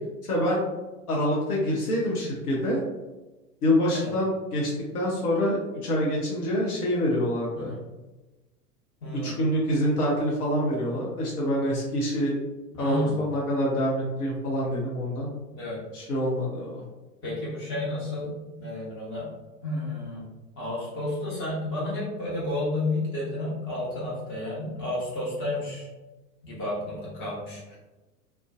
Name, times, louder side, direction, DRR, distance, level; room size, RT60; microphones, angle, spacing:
voice 1, 0.2-0.6 1.1-2.8 3.6-7.7 9.2-12.4 12.8-15.3 15.9-16.8, equal, 65° left, -3 dB, 0.8 m, -26 dB
voice 2, 9.0-9.3 12.8-13.1 15.5-15.8 17.2-19.3 19.6-20.2 20.6-25.9 26.4-27.8, left 1 dB, 25° left, -6 dB, 1.0 m, -31 dB
2.5 x 2.2 x 2.4 m, 1.1 s
figure-of-eight pair, 95°, 48 cm